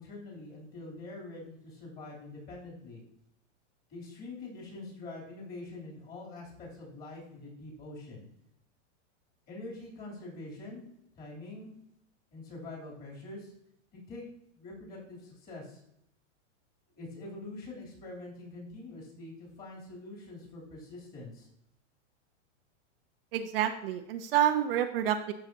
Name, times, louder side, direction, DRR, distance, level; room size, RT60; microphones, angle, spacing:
voice 1, 0.0-3.0 3.9-8.3 9.5-10.8 11.1-11.7 12.3-13.5 14.1-14.2 14.5-15.8 16.9-21.5, left 2 dB, 25° left, -3 dB, 2.9 m, -45 dB
voice 2, 23.3-25.3, right 10 dB, 50° right, 7 dB, 0.6 m, -28 dB
13.5 x 5.7 x 2.7 m, 0.78 s
supercardioid pair, 160°, 37 cm